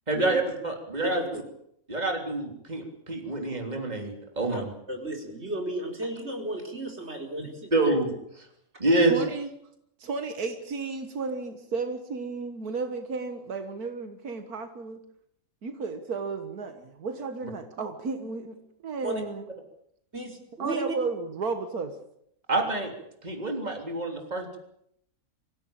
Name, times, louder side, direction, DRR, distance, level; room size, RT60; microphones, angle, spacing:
voice 1, 0.1-1.2 1.9-4.7 7.7-8.0 8.8-9.2 22.5-22.9 23.2-24.6, right 2 dB, 30° right, 3 dB, 3.6 m, -27 dB
voice 2, 1.0-1.4 4.5-4.6 4.9-8.0 19.0-19.2 20.1-20.8, right 1 dB, 45° right, 3 dB, 4.8 m, -34 dB
voice 3, 9.1-9.5 10.0-15.0 15.6-18.6 18.8-19.5 20.6-22.0, right 4 dB, 85° right, 8 dB, 2.0 m, -33 dB
24.5 x 16.0 x 8.9 m, 0.75 s
omnidirectional pair, 1.5 m